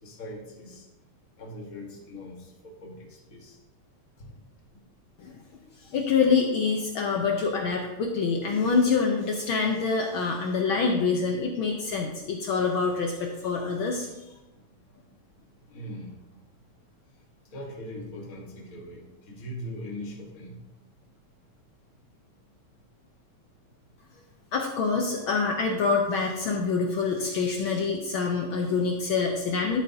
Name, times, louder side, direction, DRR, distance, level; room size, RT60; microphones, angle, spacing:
voice 1, 0.0-0.8 1.4-3.6 4.2-4.3 15.7-16.1 17.5-20.6, left 1 dB, 40° left, -1 dB, 1.4 m, -40 dB
voice 2, 5.8-14.1 24.5-29.8, left 4 dB, 80° left, 1 dB, 1.1 m, -26 dB
12.0 x 8.3 x 2.8 m, 1.1 s
omnidirectional pair, 3.3 m